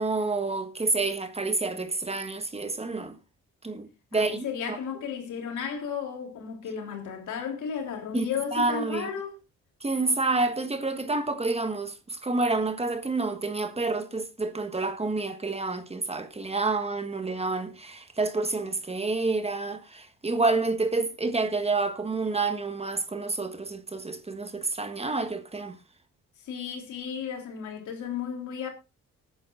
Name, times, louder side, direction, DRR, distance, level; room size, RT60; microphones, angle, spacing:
voice 1, 0.0-3.2 3.6-4.8 8.1-9.1 9.8-25.8, right 3 dB, 20° right, 1.4 m, -29 dB
voice 2, 4.1-9.4 26.4-28.7, left 7 dB, 75° left, 3.3 m, -34 dB
19.0 x 9.5 x 2.5 m
cardioid pair, 90°, 30 cm